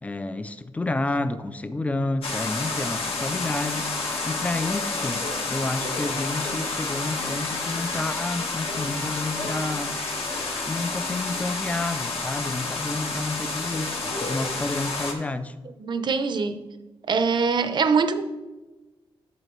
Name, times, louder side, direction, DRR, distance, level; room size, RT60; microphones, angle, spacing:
voice 1, 0.0-4.0 4.3-10.0 10.7-15.5, left 2 dB, 15° left, 0.4 m, -30 dB
sound 1, 2.2-15.1, left 3 dB, 75° left, 1.4 m, -30 dB
Trumpet, 5.3-12.8, left 3 dB, 45° left, 0.9 m, -42 dB
voice 2, 15.8-16.7 17.1-18.2, right 5 dB, 50° right, 0.6 m, -23 dB
12.0 x 6.6 x 3.1 m
wide cardioid pair, 140°, 10 cm